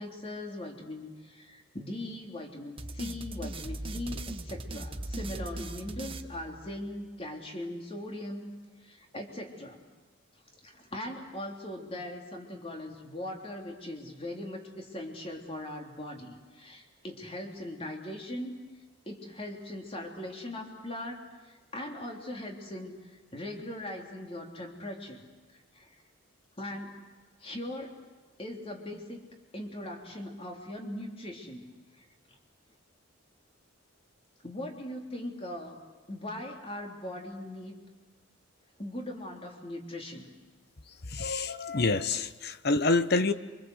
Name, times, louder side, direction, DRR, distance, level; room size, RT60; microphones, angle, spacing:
voice 1, 0.0-8.5 8.8-9.8 10.6-18.6 19.1-25.2 25.7-25.9 26.6-27.0 27.4-28.0 28.4-29.2 29.5-31.7 32.0-32.1 34.4-35.8 36.1-37.8 38.8-40.3, left 1 dB, 25° left, 2 dB, 3.5 m, -40 dB
sound 1, 2.8-7.1, right 1 dB, 25° right, 1.3 m, -39 dB
voice 2, 41.1-43.3, left 3 dB, 50° left, 12 dB, 1.1 m, -27 dB
28.5 x 25.5 x 8.1 m, 1.3 s
head